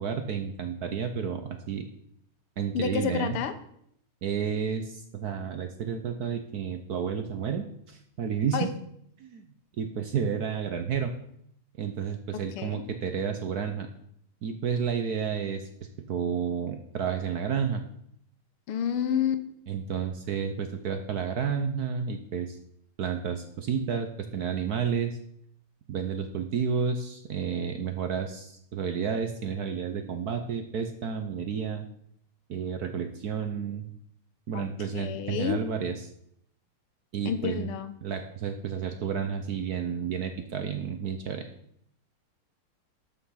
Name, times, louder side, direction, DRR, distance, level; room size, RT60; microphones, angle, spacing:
voice 1, 0.0-1.9 2.6-3.4 4.2-8.7 9.2-9.4 9.8-11.1 11.8-13.9 14.4-15.7 16.1-17.8 19.7-22.6 23.0-25.2 25.9-31.9 32.5-33.9 34.5-36.1 37.1-37.7 38.0-41.5, right 7 dB, 60° right, 7 dB, 1.1 m, -31 dB
voice 2, 2.7-3.5 8.5-8.7 12.6-12.8 18.7-19.4 34.5-35.6 37.2-37.9, left 8 dB, 80° left, 10 dB, 1.8 m, -29 dB
13.0 x 6.0 x 5.7 m, 0.71 s
omnidirectional pair, 2.4 m